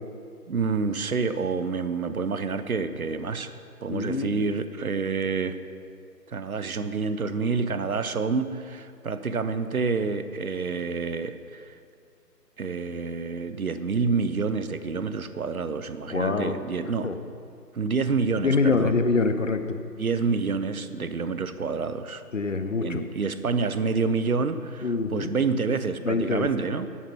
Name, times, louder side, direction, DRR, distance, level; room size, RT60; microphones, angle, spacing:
voice 1, 0.5-3.5 3.8-5.6 6.3-11.7 12.6-17.1 17.7-19.0 20.0-22.2 22.8-26.9, right 4 dB, 60° right, 11 dB, 0.7 m, -28 dB
voice 2, 3.9-4.4 16.1-16.5 17.0-17.1 18.4-19.8 22.3-23.0 24.8-25.3 26.0-26.5, left 4 dB, 50° left, 9 dB, 0.7 m, -25 dB
9.6 x 8.7 x 5.8 m, 2.3 s
figure-of-eight pair, 155°, 49 cm